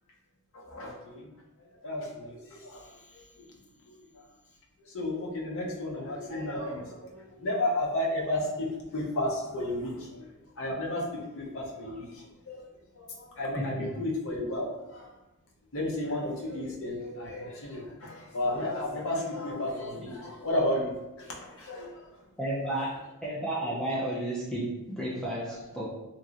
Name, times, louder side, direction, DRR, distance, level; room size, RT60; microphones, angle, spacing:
voice 1, 0.5-1.3 1.8-3.4 4.9-10.3 10.6-12.6 12.9-15.1 15.7-22.1 22.6-22.8 23.7-23.8, left 1 dB, 65° left, -2 dB, 0.7 m, -33 dB
voice 2, 22.4-22.9 23.2-25.8, right 1 dB, 5° left, -7 dB, 0.5 m, -32 dB
2.9 x 2.9 x 2.5 m, 1.0 s
head